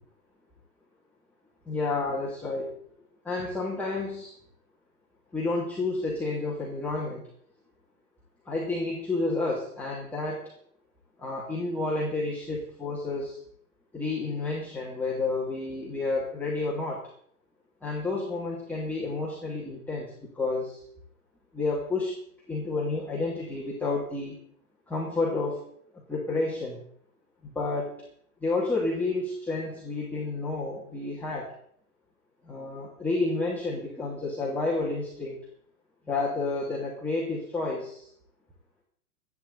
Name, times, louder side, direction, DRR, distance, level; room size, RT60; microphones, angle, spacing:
voice 1, 1.7-2.7 3.2-4.3 5.3-7.2 8.5-10.5 11.2-13.4 13.9-17.0 17.8-20.8 21.5-22.1 22.5-24.3 24.9-25.6 26.1-26.8 27.4-28.0 28.4-31.5 32.5-35.4 36.1-38.1, left 3 dB, 5° left, -6 dB, 2.6 m, -30 dB
27.5 x 9.7 x 4.1 m, 0.64 s
hypercardioid pair, 145°, 46 cm